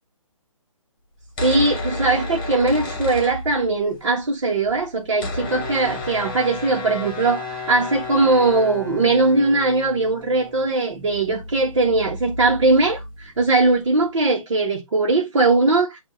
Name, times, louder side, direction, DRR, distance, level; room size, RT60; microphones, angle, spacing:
sound 1, 1.2-4.0 4.2-4.3 4.5-13.9, left 2 dB, 15° left, 1.5 m, -32 dB
voice 1, 1.4-16.0, right 3 dB, 55° right, 1.5 m, -20 dB
8.1 x 2.8 x 5.0 m
hypercardioid pair, 175°, 18 cm